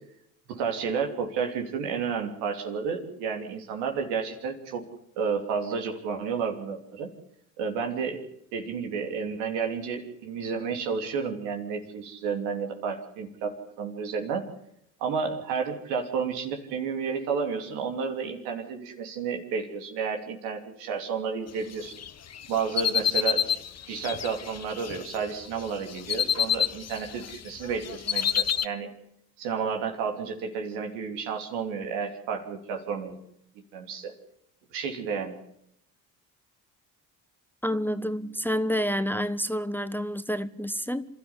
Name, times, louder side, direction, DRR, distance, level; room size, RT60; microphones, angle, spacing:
voice 1, 0.5-4.9 5.2-7.1 7.6-8.2 8.5-14.4 15.0-21.9 22.5-23.5 23.9-28.9 29.4-33.2 33.7-34.1 34.7-35.4, right 6 dB, 80° right, 3.3 m, -31 dB
sound 1, 21.9-25.2 25.6-27.4 27.6-28.7, left 8 dB, 35° left, 1.0 m, -28 dB
voice 2, 37.6-41.1, equal, 5° left, 1.1 m, -28 dB
27.0 x 12.5 x 9.8 m
hypercardioid pair, 55°, 43 cm